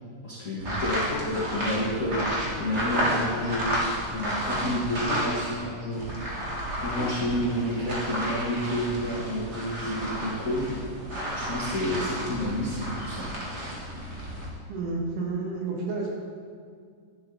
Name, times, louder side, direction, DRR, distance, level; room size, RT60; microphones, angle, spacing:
voice 1, 0.2-2.2 2.6-3.7 4.1-6.1 6.8-10.7 11.3-13.2, equal, 45° left, -8 dB, 1.0 m, -30 dB
sound 1, 0.6-5.6 5.9-14.5, equal, 35° right, 1.2 m, -32 dB
sound 2, 1.1-1.7 3.0-3.7 5.0-5.9 7.0-7.7 8.8-9.1, left 6 dB, 80° left, 2.1 m, -39 dB
voice 2, 14.7-16.1, right 3 dB, 75° right, -2 dB, 3.0 m, -30 dB
11.5 x 7.1 x 3.8 m, 2.1 s
omnidirectional pair, 3.7 m